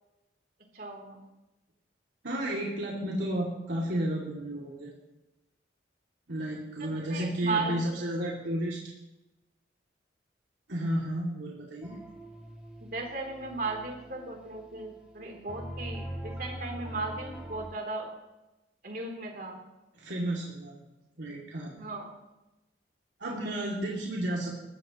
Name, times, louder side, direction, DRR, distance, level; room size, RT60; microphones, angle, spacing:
voice 1, 0.7-1.2 6.8-7.8 12.8-18.1 18.8-19.6 21.8-22.1, right 3 dB, 50° right, 1 dB, 3.5 m, -36 dB
voice 2, 2.2-4.9 6.3-8.8 10.7-12.0 19.9-20.8 21.2-21.7 23.2-24.5, right 1 dB, 80° right, -4 dB, 2.7 m, -32 dB
sound 1, 11.8-17.7, right 1 dB, 5° right, 2.9 m, -43 dB
20.5 x 15.0 x 3.1 m, 1.0 s
head